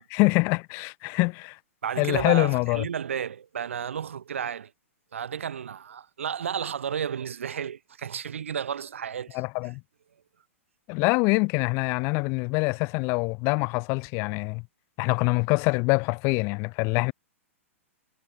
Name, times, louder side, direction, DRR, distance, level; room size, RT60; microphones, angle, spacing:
voice 1, 0.1-1.6 2.0-2.9 9.3-9.8 10.9-14.7 15.0-17.1, left 29 dB, 35° left, 0.6 m, -25 dB
voice 2, 1.8-4.7 5.1-9.4, right 8 dB, 65° right, 0.5 m, -32 dB
figure-of-eight pair, 110°, 8 cm